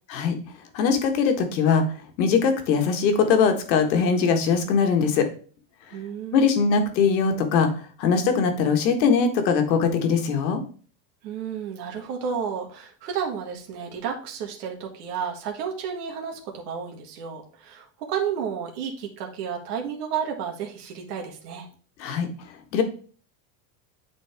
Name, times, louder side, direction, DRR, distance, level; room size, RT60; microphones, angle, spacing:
voice 1, 0.7-1.8 2.2-5.3 6.3-7.7 8.0-10.6 22.0-22.3 22.7-22.8, left 5 dB, 85° left, 6 dB, 1.6 m, -21 dB
voice 2, 5.9-6.6 11.2-21.7, right 7 dB, 65° right, 1 dB, 1.7 m, -32 dB
8.6 x 4.1 x 3.5 m, 0.41 s
supercardioid pair, 180°, 50 cm